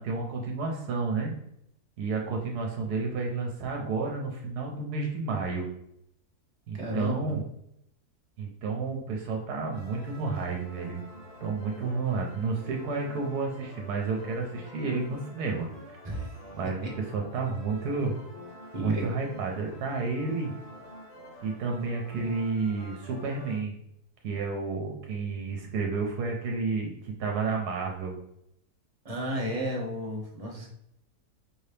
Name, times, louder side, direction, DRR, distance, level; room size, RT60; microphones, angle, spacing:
voice 1, 0.0-1.3 2.0-5.7 6.7-7.4 8.4-11.0 11.4-15.7 16.5-18.1 18.8-20.6 21.4-23.7 24.2-28.2, right 4 dB, 80° right, 0 dB, 1.3 m, -31 dB
voice 2, 6.7-7.3 16.0-16.3 18.7-19.1 29.0-30.7, right 1 dB, 30° right, -2 dB, 0.8 m, -32 dB
sound 1, 9.7-23.6, equal, 50° left, 1.4 m, -48 dB
5.0 x 2.8 x 3.3 m, 0.76 s
omnidirectional pair, 1.7 m